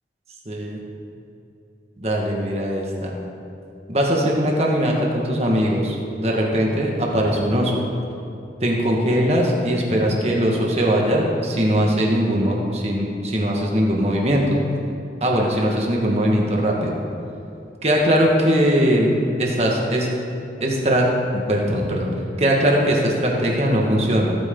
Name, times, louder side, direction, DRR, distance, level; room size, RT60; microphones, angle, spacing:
voice 1, 0.5-0.8 2.0-3.1 3.9-7.8 8.6-14.6 15.2-17.0 17.8-19.1 19.4-20.1 20.6-21.0 21.3-22.1 22.4-24.4, equal, 35° right, -1 dB, 1.8 m, -20 dB
17.5 x 9.0 x 3.9 m, 2.9 s
head